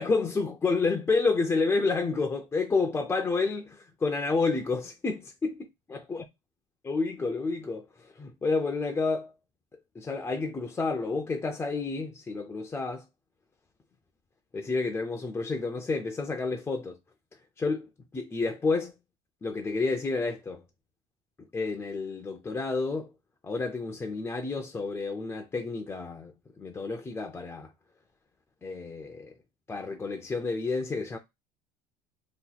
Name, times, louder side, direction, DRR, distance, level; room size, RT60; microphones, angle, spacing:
voice 1, 0.0-5.7 6.1-6.2 6.8-9.3 10.0-13.0 14.5-17.0 17.6-18.9 19.4-20.6 21.5-23.1 23.4-26.3 26.6-27.7 28.6-29.3 29.7-31.2, left 3 dB, 15° left, 0.3 m, -30 dB
2.8 x 2.2 x 3.8 m
cardioid pair, 135°, 17 cm